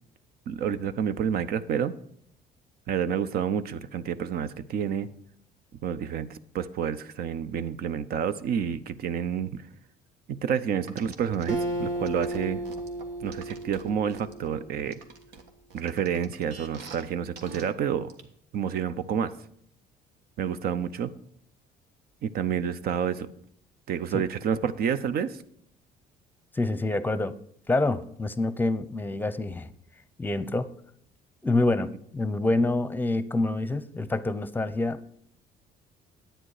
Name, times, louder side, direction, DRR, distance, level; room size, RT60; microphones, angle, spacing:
voice 1, 0.5-1.9 2.9-5.1 5.8-9.5 10.3-12.6 13.2-15.0 15.7-18.1 18.5-19.3 20.4-21.1 22.2-23.3 23.9-25.4, right 8 dB, 65° right, 13 dB, 0.7 m, -29 dB
sound 1, 10.9-11.5 12.0-14.5 14.9-17.0 17.4-17.6 18.1-18.2, right 5 dB, 85° right, 1.4 m, -45 dB
Acoustic guitar, 11.5-15.0, right 1 dB, 45° right, 1.6 m, -33 dB
voice 2, 26.5-27.3 27.7-29.7 30.2-30.7 31.4-35.1, left 2 dB, 10° left, 15 dB, 0.7 m, -27 dB
10.0 x 8.9 x 4.9 m, 0.67 s
cardioid pair, 110°, 17 cm